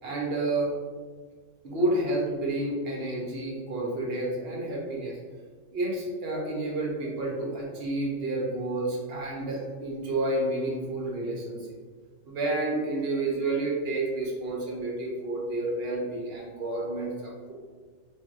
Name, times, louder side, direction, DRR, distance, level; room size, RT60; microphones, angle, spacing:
voice 1, 0.0-0.7 1.6-5.2 5.7-11.6 12.3-17.5, right 2 dB, 60° right, -3 dB, 0.8 m, -30 dB
3.4 x 2.6 x 2.4 m, 1.5 s
omnidirectional pair, 1.3 m